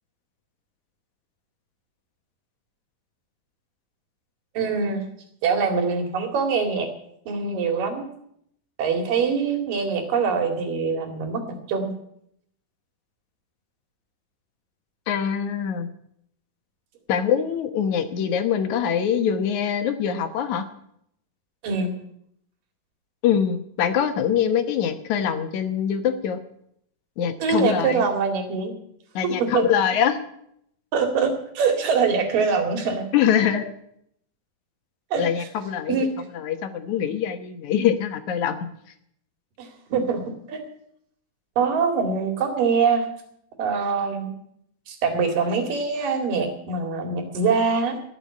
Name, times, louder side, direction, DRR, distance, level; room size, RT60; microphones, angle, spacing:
voice 1, 4.5-5.1 5.4-6.9 7.3-8.1 8.8-12.0 21.6-21.9 27.4-28.7 29.4-29.7 30.9-33.1 35.1-35.5 35.9-36.1 39.6-40.6 41.6-43.1 43.6-44.3 44.9-48.0, right 5 dB, 90° right, 5 dB, 4.0 m, -24 dB
voice 2, 15.1-15.9 17.1-20.7 23.2-26.4 27.2-28.0 29.2-30.2 33.1-33.6 35.2-36.0 36.4-38.6, left 8 dB, 70° left, 8 dB, 2.4 m, -23 dB
18.0 x 7.1 x 9.4 m, 0.73 s
omnidirectional pair, 3.8 m